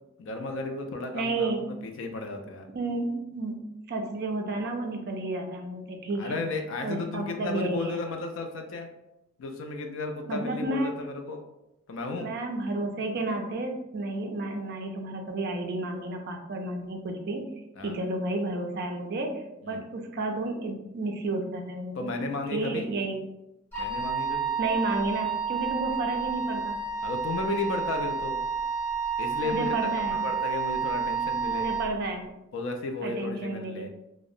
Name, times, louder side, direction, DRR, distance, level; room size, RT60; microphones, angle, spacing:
voice 1, 0.2-2.7 6.2-8.9 9.4-11.4 11.9-12.3 17.8-17.9 19.6-19.8 22.0-22.9 23.8-24.5 27.0-28.4 29.2-29.8 30.1-31.7 32.5-33.9, left 3 dB, 60° left, 5 dB, 0.3 m, -34 dB
voice 2, 1.1-1.6 2.7-3.6 3.9-6.4 6.8-8.0 10.3-10.9 12.1-17.5 17.8-22.1 22.5-23.2 24.6-26.8 29.4-30.2 31.5-32.3 33.0-33.9, right 2 dB, 50° right, 3 dB, 0.4 m, -31 dB
Wind instrument woodwind instrument, 23.7-31.9, right 5 dB, 10° left, 0.6 m, -30 dB
2.7 x 2.0 x 2.4 m, 0.90 s
head